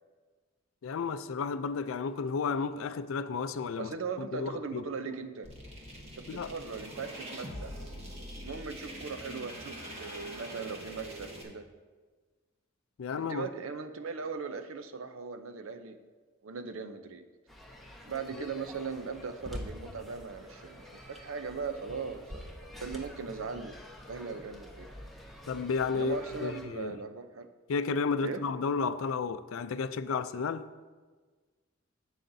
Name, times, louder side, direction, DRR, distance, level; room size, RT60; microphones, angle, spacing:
voice 1, 0.8-3.9 4.2-4.8 6.3-6.5 13.0-13.5 18.4-18.5 25.5-27.0 27.7-30.7, left 5 dB, 80° left, 0.4 m, -32 dB
voice 2, 3.8-5.5 6.0-7.7 8.4-11.7 13.2-16.0 16.4-17.2 18.1-23.8 24.1-24.9 25.9-27.5 28.2-28.4, right 5 dB, 90° right, 0.6 m, -39 dB
sound 1, 5.4-11.4, right 1 dB, 30° right, 1.6 m, -43 dB
sound 2, 17.5-26.7, left 1 dB, ahead, 1.0 m, -47 dB
11.5 x 8.3 x 2.7 m
head